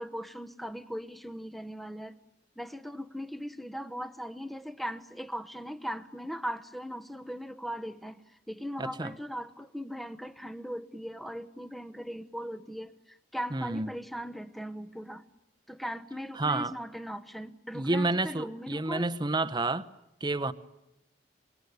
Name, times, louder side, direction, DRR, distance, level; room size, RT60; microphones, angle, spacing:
voice 1, 0.0-2.2 2.6-8.2 8.5-15.2 15.7-19.1, equal, ahead, 1.0 m, -39 dB
voice 2, 8.8-9.1 13.5-13.9 16.4-16.7 17.7-19.9 20.2-20.5, right 2 dB, 25° right, 0.9 m, -29 dB
26.0 x 22.0 x 9.5 m
head